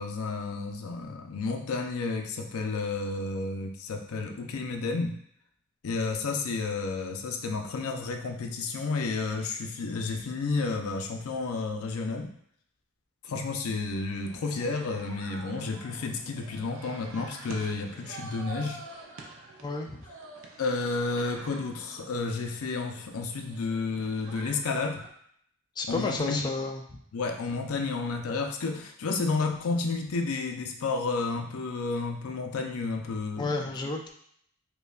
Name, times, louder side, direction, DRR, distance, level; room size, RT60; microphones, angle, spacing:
voice 1, 0.0-5.2 5.8-12.3 13.2-18.8 20.6-25.0 25.9-26.4 27.1-33.7, left 3 dB, 90° left, 4 dB, 0.5 m, -31 dB
sound 1, 14.3-25.1, right 3 dB, 65° right, 0.5 m, -47 dB
voice 2, 19.6-20.1 25.8-27.0 33.4-34.1, left 3 dB, 20° left, 2 dB, 0.3 m, -32 dB
5.3 x 2.2 x 2.3 m, 0.67 s
head